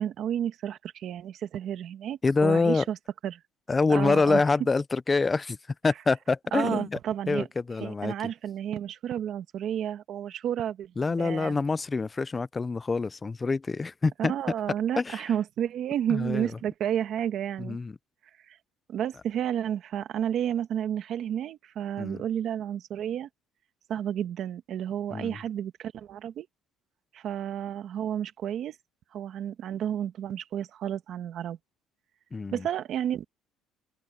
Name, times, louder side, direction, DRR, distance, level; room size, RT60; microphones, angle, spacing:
voice 1, 0.0-3.0 3.2-3.4 3.9-4.4 6.5-7.5 7.8-11.6 14.2-17.8 18.5-18.6 18.9-23.3 23.9-26.5 27.1-28.8 29.1-31.6 32.5-33.3, right 10 dB, 45° right, 1.4 m, -31 dB
voice 2, 2.2-2.8 3.7-5.6 5.8-7.0 7.3-8.1 11.0-14.3 15.0-15.3 16.1-16.5 17.6-18.0 22.0-22.2 25.1-25.4 32.3-32.7, left 4 dB, 15° left, 0.4 m, -26 dB
open air
cardioid pair, 160°, 0 cm